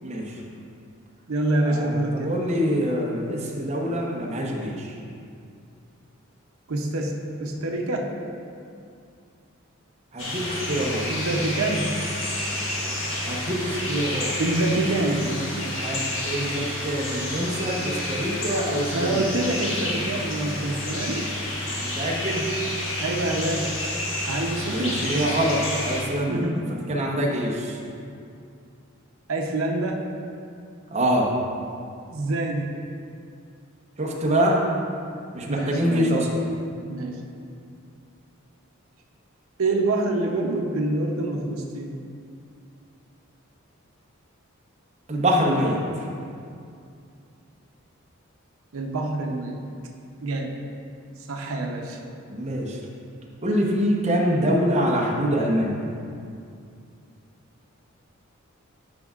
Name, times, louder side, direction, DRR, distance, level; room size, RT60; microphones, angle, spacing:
voice 1, 0.0-0.4 1.6-5.0 10.1-11.1 13.3-14.4 15.8-19.3 21.8-22.5 24.7-27.8 30.9-31.3 34.0-34.6 35.3-36.4 45.1-46.1 52.3-52.8 53.4-55.9, equal, 30° right, -2 dB, 0.8 m, -25 dB
voice 2, 1.3-2.3 6.7-8.1 11.1-12.0 14.4-15.7 18.9-21.3 23.0-23.7 24.3-25.0 26.3-26.6 29.3-30.0 32.1-32.7 35.5-36.2 36.9-37.2 39.6-42.0 48.7-49.7 50.2-50.6 51.3-52.0, right 2 dB, 85° right, 1 dB, 0.6 m, -26 dB
sound 1, 10.2-26.0, left 1 dB, 70° left, 1.4 m, -29 dB
10.5 x 5.3 x 2.4 m, 2.4 s
head